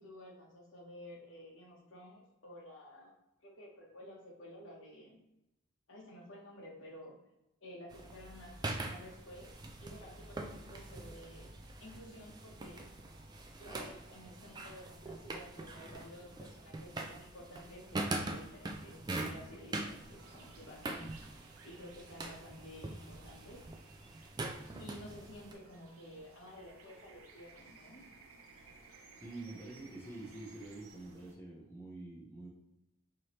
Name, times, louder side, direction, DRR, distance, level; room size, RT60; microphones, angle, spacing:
voice 1, 0.0-3.1 3.4-5.2 5.9-7.2 7.6-9.5 9.8-11.5 11.8-12.9 13.6-21.1 21.6-23.6 24.8-28.0, equal, 65° left, -4 dB, 1.0 m, -52 dB
sound 1, 7.9-25.5, right 2 dB, 20° right, 0.3 m, -43 dB
sound 2, 20.2-31.3, right 4 dB, 85° right, 0.6 m, -59 dB
voice 2, 29.1-32.5, right 2 dB, 10° left, -5 dB, 0.8 m, -47 dB
4.7 x 2.9 x 3.0 m, 0.89 s
head